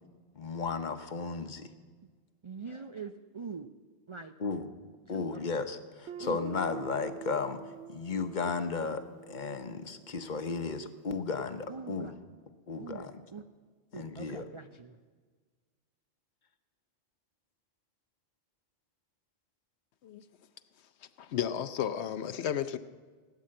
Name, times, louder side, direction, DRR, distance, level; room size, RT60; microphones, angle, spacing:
voice 1, 0.3-1.7 4.4-4.7 5.1-12.2 12.7-13.2 13.9-14.5, left 4 dB, 45° left, 0.9 m, -35 dB
voice 2, 2.4-3.7 4.1-4.3 5.1-5.4 6.2-6.5 11.7-12.1 12.8-13.4 13.9-15.0, right 5 dB, 45° right, 0.4 m, -43 dB
Guitar, 6.1-10.7, right 7 dB, 70° right, 0.8 m, -47 dB
voice 3, 21.2-22.8, left 9 dB, 70° left, 0.9 m, -33 dB
17.0 x 9.7 x 7.6 m
omnidirectional pair, 1.2 m